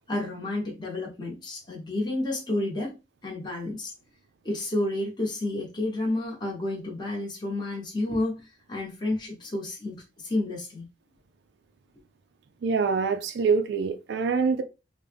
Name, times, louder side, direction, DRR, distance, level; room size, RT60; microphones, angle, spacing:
voice 1, 0.1-3.0 3.2-3.9 4.4-10.9, left 2 dB, 25° left, 1.0 m, -30 dB
voice 2, 12.6-14.6, right 5 dB, 60° right, 0.3 m, -25 dB
3.4 x 2.1 x 3.3 m
head